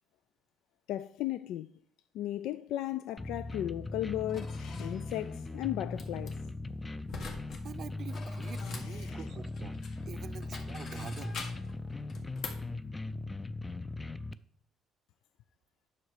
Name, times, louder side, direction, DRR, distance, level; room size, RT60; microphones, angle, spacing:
voice 1, 0.9-1.7 2.1-6.4 8.7-9.3 10.9-11.1, left 13 dB, 85° left, 0.3 m, -36 dB
sound 1, 3.2-14.3, left 2 dB, 15° left, 0.4 m, -39 dB
sound 2, 3.8-3.9 4.3-6.8 7.3-7.7 8.1-9.7 9.9-10.1 10.4-12.2, left 4 dB, 40° left, 1.3 m, -52 dB
sound 3, 5.9-6.3 7.1-7.6 7.9-10.1 10.5-11.7 12.1-12.7, left 4 dB, 60° left, 1.7 m, -44 dB
voice 2, 7.6-11.5, right 7 dB, 45° right, 0.5 m, -45 dB
9.4 x 6.3 x 4.8 m
cardioid pair, 135°, 0 cm